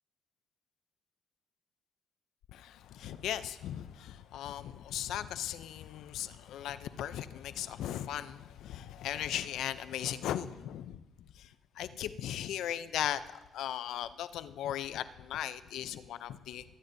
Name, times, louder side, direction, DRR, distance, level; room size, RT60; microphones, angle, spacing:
voice 1, 2.5-11.0 11.4-11.5 11.8-16.6, left 11 dB, 80° left, 0.5 m, -37 dB
22.0 x 9.3 x 2.7 m
cardioid pair, 90°, 0 cm